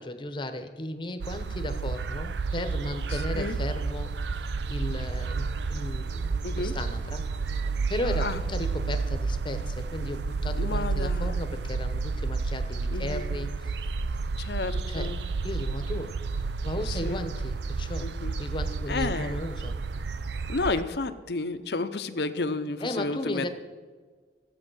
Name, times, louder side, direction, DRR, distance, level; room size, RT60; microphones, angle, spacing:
voice 1, 0.0-4.4 4.7-7.2 7.9-13.8 14.9-15.1 15.4-16.2 16.6-18.1 18.4-19.8 22.8-23.5, left 1 dB, 25° left, 8 dB, 1.0 m, -35 dB
sound 1, 1.2-20.8, right 4 dB, 75° right, 0.5 m, -31 dB
voice 2, 3.1-3.6 6.4-6.7 8.0-8.4 10.5-11.4 12.9-13.3 14.4-15.2 16.9-17.2 18.0-18.3 18.9-19.4 20.5-23.5, left 3 dB, 65° left, 10 dB, 0.8 m, -32 dB
14.0 x 8.4 x 6.3 m, 1.5 s
head